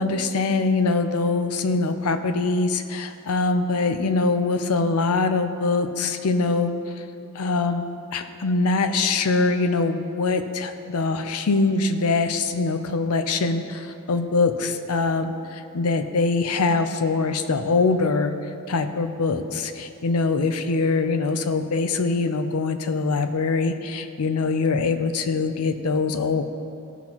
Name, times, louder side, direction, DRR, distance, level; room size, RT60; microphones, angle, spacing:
voice 1, 0.0-6.7 7.3-7.8 8.1-18.3 18.7-26.4, left 3 dB, 80° left, 8 dB, 0.5 m, -23 dB
16.0 x 6.0 x 2.9 m, 2.6 s
head